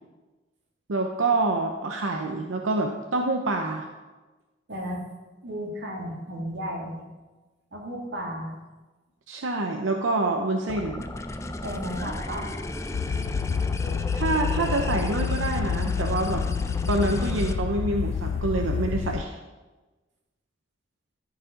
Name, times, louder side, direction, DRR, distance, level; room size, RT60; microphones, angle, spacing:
voice 1, 0.9-3.9 9.3-11.0 14.1-16.4 16.9-19.3, right 2 dB, 90° right, 3 dB, 0.7 m, -26 dB
voice 2, 4.7-5.0 5.4-7.0 7.7-8.5 11.6-12.5, equal, 60° right, -2 dB, 2.3 m, -33 dB
sound 1, 10.7-17.5, left 1 dB, 15° left, 0.4 m, -34 dB
sound 2, 12.9-19.2, left 6 dB, 80° left, 0.3 m, -28 dB
13.5 x 4.8 x 5.1 m, 1.2 s
head